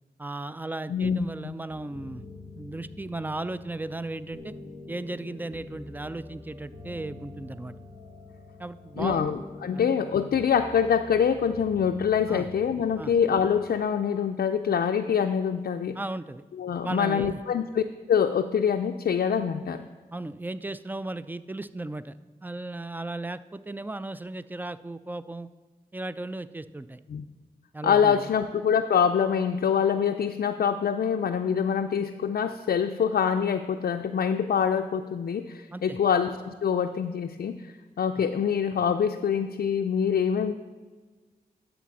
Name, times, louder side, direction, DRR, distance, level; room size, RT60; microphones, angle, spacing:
voice 1, 0.2-2.2 2.6-4.5 4.9-7.7 8.6-9.3 9.7-9.9 10.3-10.4 12.3-12.5 13.0-13.1 16.0-16.4 16.8-17.4 20.1-22.1 22.4-25.5 25.9-27.0 27.7-28.3 35.7-36.0, right 2 dB, 10° right, 14 dB, 0.3 m, -36 dB
voice 2, 0.9-1.5 9.0-16.0 16.6-17.8 18.1-19.8 27.1-27.2 27.8-40.5, left 7 dB, 70° left, 6 dB, 0.4 m, -25 dB
sound 1, 1.7-13.8, left 2 dB, 45° right, 2.1 m, -46 dB
10.0 x 4.1 x 7.1 m, 1.4 s
cardioid pair, 55°, 16 cm